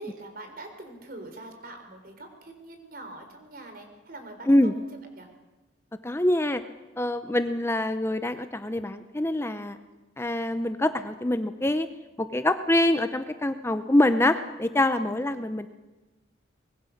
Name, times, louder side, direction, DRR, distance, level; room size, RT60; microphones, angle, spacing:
voice 1, 0.0-4.9 5.2-5.3 15.2-15.4, right 2 dB, 50° right, 6 dB, 3.9 m, -43 dB
voice 2, 6.0-6.6 7.0-9.8 10.2-11.9 12.2-15.7, left 1 dB, 15° left, 10 dB, 0.6 m, -25 dB
24.0 x 20.5 x 6.5 m, 1.1 s
head